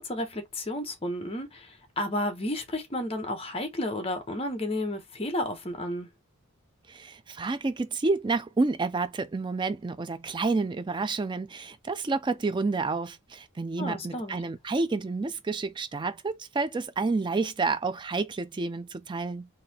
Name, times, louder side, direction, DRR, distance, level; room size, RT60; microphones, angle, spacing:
voice 1, 0.0-6.1 13.8-14.4, left 1 dB, 25° left, 0.9 m, -32 dB
voice 2, 6.9-19.5, right 3 dB, 20° right, 0.3 m, -29 dB
3.9 x 2.7 x 2.8 m
head